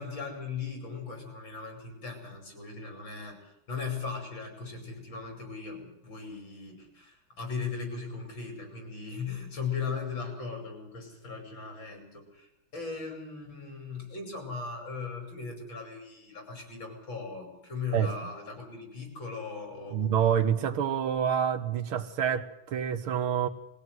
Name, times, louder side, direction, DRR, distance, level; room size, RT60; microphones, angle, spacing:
voice 1, 0.0-20.1, left 5 dB, 60° left, 4 dB, 6.6 m, -38 dB
voice 2, 19.9-23.5, right 8 dB, 75° right, 9 dB, 2.1 m, -27 dB
21.5 x 16.5 x 9.4 m, 0.87 s
omnidirectional pair, 2.4 m